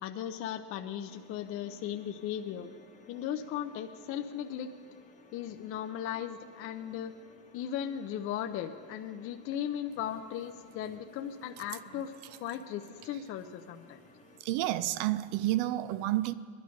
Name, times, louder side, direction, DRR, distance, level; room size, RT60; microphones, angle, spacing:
voice 1, 0.0-2.7 3.1-4.7 5.3-7.1 7.5-14.0, left 10 dB, 35° left, 6 dB, 0.6 m, -37 dB
sound 1, 1.1-14.4, left 4 dB, 20° left, 1.1 m, -58 dB
voice 2, 14.4-16.3, right 15 dB, 50° right, 15 dB, 0.6 m, -30 dB
20.5 x 11.5 x 5.2 m, 2.2 s
supercardioid pair, 145°, 40 cm